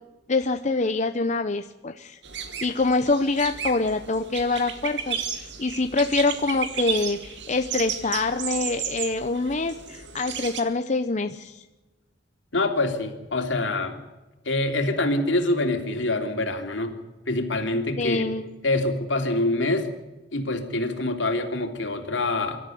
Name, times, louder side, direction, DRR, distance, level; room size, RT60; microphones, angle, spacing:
voice 1, 0.3-2.2 2.6-11.6 18.0-18.5, left 3 dB, 40° left, 8 dB, 0.8 m, -25 dB
sound 1, 2.2-10.6, right 7 dB, 65° right, 2.1 m, -33 dB
voice 2, 12.5-14.0 14.4-16.9 17.3-18.3 18.6-19.9 20.3-22.6, left 2 dB, 75° left, 5 dB, 3.2 m, -25 dB
24.5 x 13.5 x 9.4 m, 1.1 s
head